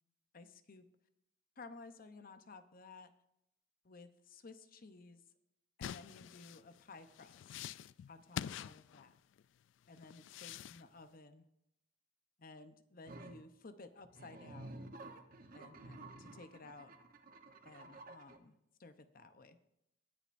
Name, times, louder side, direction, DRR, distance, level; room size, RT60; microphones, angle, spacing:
voice 1, 0.3-0.9 1.6-3.1 3.8-5.2 5.8-7.5 8.1-9.2 9.9-11.5 12.4-14.8 15.5-16.9 17.6-19.6, left 3 dB, 50° left, 10 dB, 0.8 m, -55 dB
sound 1, 5.8-9.4 10.0-10.8, left 9 dB, 80° left, 0.3 m, -46 dB
sound 2, 13.1-13.4 14.0-18.4, right 2 dB, 50° right, 1.0 m, -52 dB
19.0 x 9.7 x 2.6 m, 0.81 s
head